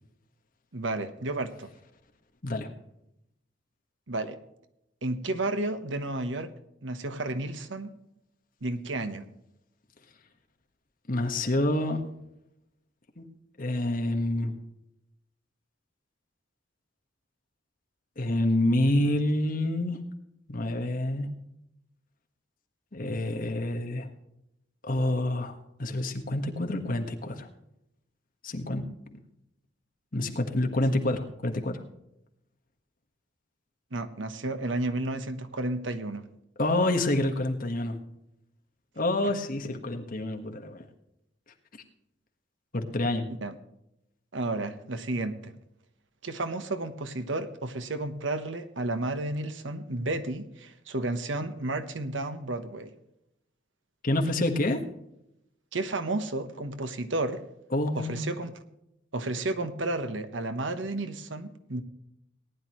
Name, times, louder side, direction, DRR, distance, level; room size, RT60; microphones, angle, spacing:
voice 1, 0.7-1.7 4.1-4.4 5.0-6.5 6.8-7.9 8.6-9.3 33.9-36.2 43.4-43.5 44.3-45.5 46.2-52.9 55.7-57.4 58.0-58.5 59.1-61.8, right 2 dB, 80° right, 9 dB, 1.2 m, -32 dB
voice 2, 11.1-12.0 13.2-13.3 13.6-14.5 18.2-20.0 20.5-21.3 22.9-24.1 24.8-27.5 28.4-28.8 29.1-29.2 30.1-31.8 36.6-38.0 39.0-40.8 42.7-43.3 54.0-54.8 57.7-58.3, left 1 dB, 50° left, 4 dB, 1.5 m, -27 dB
18.5 x 10.5 x 3.1 m, 0.82 s
head